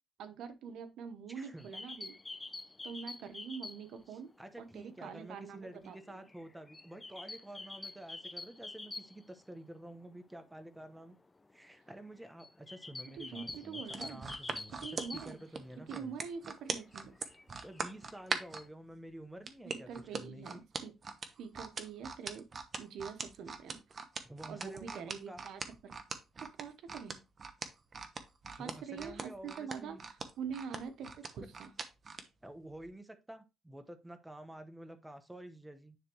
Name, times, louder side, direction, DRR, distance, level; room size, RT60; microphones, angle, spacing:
voice 1, 0.2-2.2 2.8-4.3 4.6-6.2 13.1-14.3 14.8-15.4 15.9-17.1 19.6-20.9 21.4-22.5 22.8-23.8 24.5-26.0 26.4-27.2 28.5-30.1 30.4-31.7, right 6 dB, 80° right, 9 dB, 0.9 m, -45 dB
voice 2, 1.3-1.7 4.1-11.2 11.5-16.2 17.6-20.6 24.2-25.0 25.3-25.4 28.6-30.0 32.4-36.0, right 1 dB, 10° right, 9 dB, 1.1 m, -50 dB
sound 1, 1.6-4.1 4.3-4.4 4.7-9.6 9.9-10.0 10.2-10.5 11.0-16.0 16.4-18.7, left 3 dB, 20° left, 0.6 m, -47 dB
sound 2, 13.9-18.6 19.5-32.3 32.7-32.9, right 4 dB, 40° right, 1.0 m, -41 dB
10.0 x 3.4 x 3.0 m, 0.26 s
cardioid pair, 90°, 0 cm